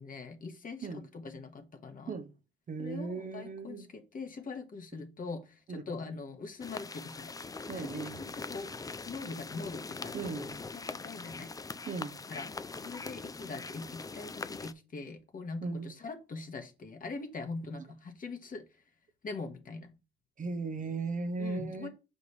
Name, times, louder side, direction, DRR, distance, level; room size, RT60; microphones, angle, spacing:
voice 1, 0.0-2.1 2.8-5.4 5.9-7.3 7.7-8.7 9.1-10.1 10.7-11.5 12.3-12.5 12.8-18.6 19.2-19.9 21.4-21.9, left 3 dB, 45° left, 1.7 m, -42 dB
voice 2, 2.7-3.9 4.9-5.0 5.7-5.9 7.7-8.2 10.1-10.6 11.9-12.2 15.6-16.0 20.4-21.9, right 4 dB, 40° right, 0.9 m, -37 dB
sound 1, 6.6-14.7, left 4 dB, 20° left, 0.4 m, -42 dB
6.5 x 5.3 x 3.3 m
cardioid pair, 90°, 20 cm